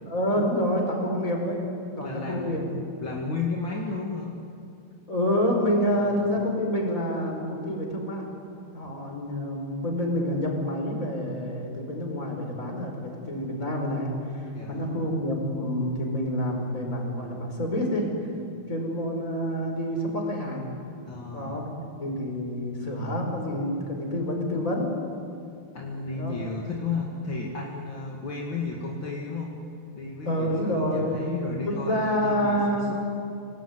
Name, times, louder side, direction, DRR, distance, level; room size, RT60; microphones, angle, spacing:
voice 1, 0.1-1.6 2.0-2.6 5.1-8.3 8.7-18.1 18.7-20.7 21.3-24.9 26.1-26.4 30.2-31.2 31.6-32.9, equal, 35° left, 1 dB, 5.5 m, -28 dB
voice 2, 2.0-4.3 5.9-6.3 8.8-8.9 14.5-14.9 21.1-21.6 25.7-29.5 29.9-32.8, left 3 dB, 60° left, -2 dB, 3.1 m, -33 dB
28.5 x 19.5 x 9.7 m, 2.5 s
omnidirectional pair, 2.4 m